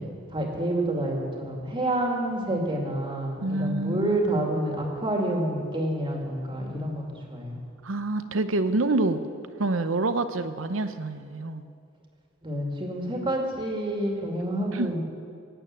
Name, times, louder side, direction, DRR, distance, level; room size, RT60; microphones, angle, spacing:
voice 1, 0.0-7.6 12.4-15.0, right 1 dB, 25° right, 0 dB, 2.3 m, -28 dB
voice 2, 3.4-4.4 7.8-9.2 9.6-11.6 14.7-14.9, right 2 dB, 75° right, 10 dB, 0.9 m, -27 dB
18.0 x 9.2 x 7.5 m, 2.3 s
head